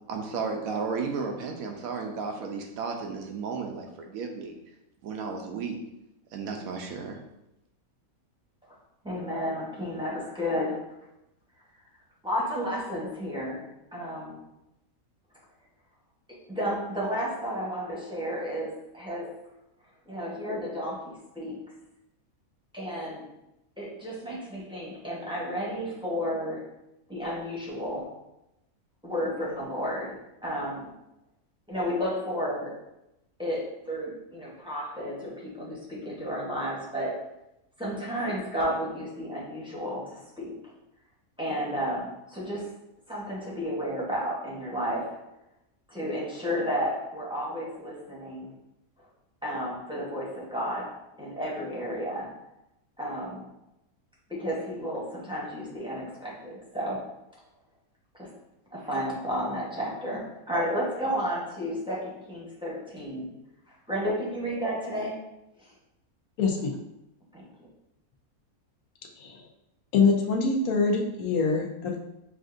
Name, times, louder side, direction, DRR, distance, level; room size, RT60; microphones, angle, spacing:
voice 1, 0.1-4.6 5.0-5.8 6.3-7.2, right 5 dB, 75° right, 3 dB, 1.1 m, -33 dB
voice 2, 9.0-10.8 12.2-13.7 13.9-14.4 16.5-19.3 20.1-21.6 22.7-23.3 23.8-26.6 27.1-28.1 29.0-30.9 31.7-32.7 33.4-37.1 37.8-40.5 41.4-42.7 43.1-45.1 45.9-48.5 49.4-50.9 51.2-52.3 53.0-53.4 54.3-57.0 58.2-58.3 58.7-63.3 63.9-65.2 67.3-67.5, equal, 5° right, -6 dB, 0.7 m, -32 dB
voice 3, 66.4-66.8 69.2-69.4 69.9-72.0, left 4 dB, 85° left, 0 dB, 1.2 m, -24 dB
6.2 x 2.4 x 2.5 m, 0.89 s
omnidirectional pair, 1.5 m